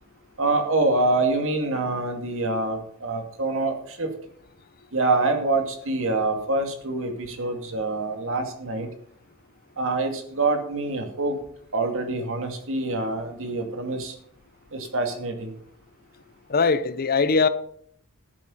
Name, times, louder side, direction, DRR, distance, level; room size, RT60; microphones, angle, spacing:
voice 1, 0.4-4.1 4.9-8.9 9.8-11.4 11.7-14.2 14.7-15.5, right 2 dB, 65° right, 2.4 m, -25 dB
voice 2, 16.5-17.5, left 4 dB, 45° left, 0.7 m, -21 dB
13.5 x 8.0 x 5.6 m
head